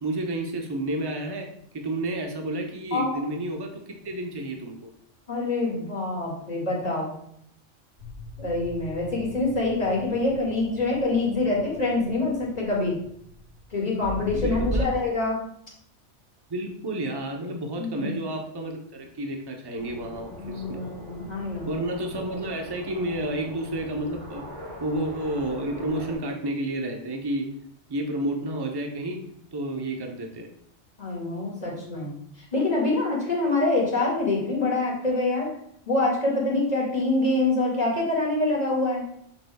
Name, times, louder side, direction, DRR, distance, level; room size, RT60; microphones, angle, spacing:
voice 1, 0.0-1.5 1.7-4.9 14.3-14.9 16.5-20.8 21.7-24.4 24.8-27.5 27.9-29.2 29.5-30.5, right 1 dB, 25° right, 2 dB, 0.8 m, -30 dB
voice 2, 5.3-7.1 8.4-13.0 13.7-15.4 17.8-18.2 20.4-21.9 31.0-32.1 32.5-35.5 35.9-39.0, left 2 dB, 35° left, -3 dB, 2.1 m, -25 dB
sound 1, 8.0-14.8, equal, 55° right, 2.8 m, -38 dB
sound 2, 19.8-26.1, left 1 dB, 70° right, 3.2 m, -42 dB
7.1 x 6.6 x 2.3 m, 0.69 s
omnidirectional pair, 1.2 m